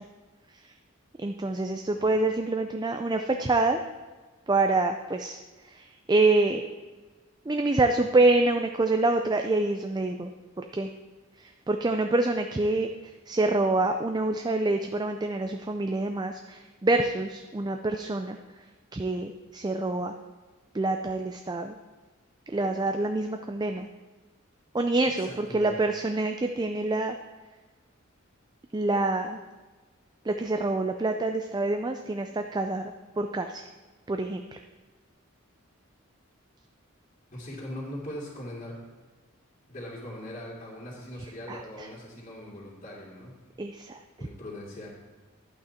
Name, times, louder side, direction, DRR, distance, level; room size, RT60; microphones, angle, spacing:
voice 1, 1.2-3.8 4.5-5.4 5.7-6.6 7.5-10.3 10.7-10.9 11.7-12.9 13.3-18.4 18.9-20.1 20.7-21.7 22.5-23.9 24.7-27.2 28.7-29.4 30.3-32.9 33.2-33.6 34.1-34.4 41.5-41.6 43.6-44.0, right 2 dB, 20° right, 5 dB, 0.4 m, -26 dB
voice 2, 25.2-25.7 37.3-38.8 39.7-43.3 44.2-45.0, left 1 dB, 35° left, -8 dB, 2.7 m, -40 dB
11.5 x 8.6 x 4.3 m, 1.3 s
head